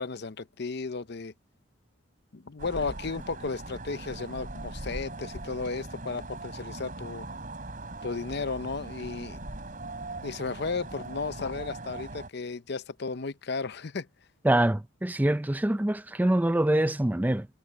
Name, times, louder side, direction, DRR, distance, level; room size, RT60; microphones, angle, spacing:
voice 1, 0.0-1.3 2.3-7.3 8.0-9.4 10.2-14.1, left 4 dB, 55° left, 0.7 m, -34 dB
sound 1, 2.6-12.3, right 2 dB, 40° right, 4.9 m, -40 dB
voice 2, 14.4-17.5, right 1 dB, 10° right, 0.4 m, -25 dB
head